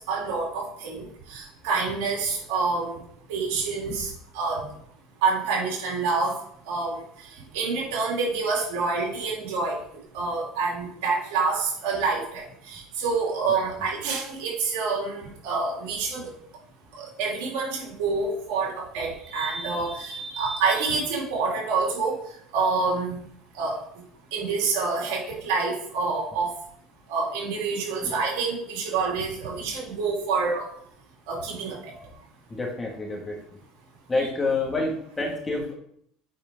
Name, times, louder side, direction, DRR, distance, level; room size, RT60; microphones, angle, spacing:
voice 1, 0.1-3.0 3.3-4.7 5.2-6.3 6.6-7.3 7.5-9.8 10.1-16.3 17.0-22.2 22.5-23.2 23.5-23.8 24.3-26.6 27.1-30.6 31.3-31.9, right 4 dB, 75° right, -3 dB, 3.4 m, -27 dB
voice 2, 32.5-33.4 34.1-35.7, left 3 dB, 20° left, -1 dB, 2.2 m, -28 dB
8.3 x 4.9 x 3.9 m, 0.67 s
supercardioid pair, 100°, 0 cm